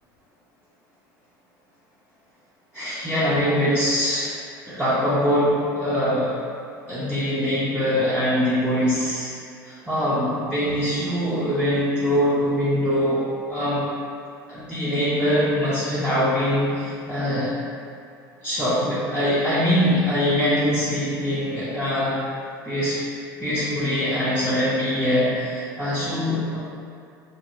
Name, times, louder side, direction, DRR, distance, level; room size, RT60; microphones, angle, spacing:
voice 1, 2.7-4.3 4.7-6.4 6.9-9.3 9.6-13.9 14.5-17.5 18.4-22.2 22.6-23.0 23.4-26.6, equal, 10° right, -11 dB, 0.7 m, -23 dB
2.8 x 2.7 x 2.6 m, 2.4 s
hypercardioid pair, 85°, 11 cm